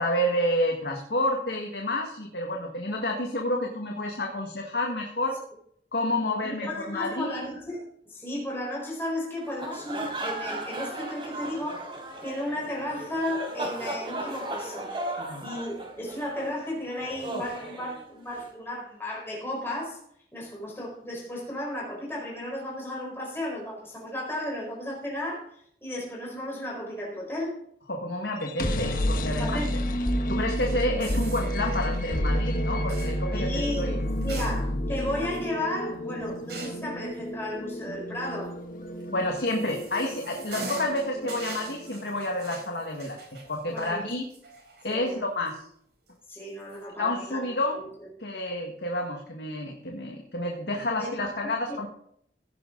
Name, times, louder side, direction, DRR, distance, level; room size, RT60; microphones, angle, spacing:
voice 1, 0.0-5.4 5.9-7.4 15.2-15.5 27.9-29.6 30.3-33.5 33.8-33.9 39.1-44.2 44.8-45.6 47.0-47.8 48.2-51.9, left 1 dB, 70° left, 1 dB, 1.8 m, -29 dB
voice 2, 6.4-11.9 12.2-14.9 15.4-20.0 20.3-27.6 29.4-29.8 33.3-38.5 43.7-44.1 44.9-45.2 46.3-47.5 47.7-48.1 50.9-51.8, left 1 dB, 15° left, -3 dB, 4.6 m, -34 dB
sound 1, 9.4-18.5, right 1 dB, 30° right, 4.1 m, -36 dB
sound 2, 28.3-42.2, equal, 50° left, 1.4 m, -30 dB
sound 3, 31.0-31.9 32.9-33.2 34.1-35.0 35.3-35.4 36.5-36.9 39.0-45.1 45.5-45.6 46.5-46.8, right 3 dB, 75° right, 4.7 m, -42 dB
16.5 x 10.5 x 3.9 m, 0.66 s
head